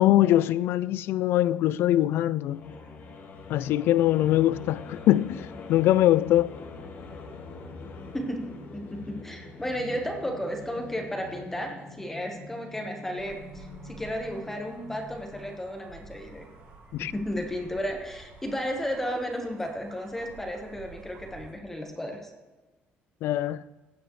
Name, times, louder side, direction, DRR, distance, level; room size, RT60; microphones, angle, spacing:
voice 1, 0.0-2.6 3.5-6.5 16.9-17.1 23.2-23.6, left 13 dB, 70° left, 0.4 m, -22 dB
sound 1, 2.5-15.7, left 3 dB, 50° left, 1.6 m, -44 dB
voice 2, 8.1-16.4 17.0-22.3, equal, 10° left, 1.2 m, -33 dB
sound 2, 13.2-21.5, right 4 dB, 60° right, 3.2 m, -50 dB
16.0 x 9.0 x 3.1 m
cardioid pair, 160°, 4 cm